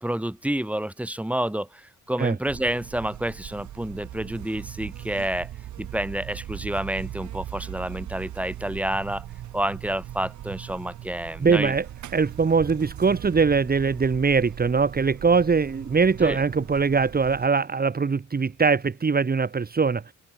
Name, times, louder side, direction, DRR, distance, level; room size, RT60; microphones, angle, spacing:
voice 1, 0.0-5.5 5.8-9.3 9.5-11.7 16.2-16.4, right 1 dB, 5° right, 3.8 m, -29 dB
Buzz, 2.4-17.5, right 12 dB, 70° right, 2.6 m, -39 dB
voice 2, 11.4-11.9 12.1-20.1, right 5 dB, 30° right, 2.6 m, -22 dB
cardioid pair, 90°, 30 cm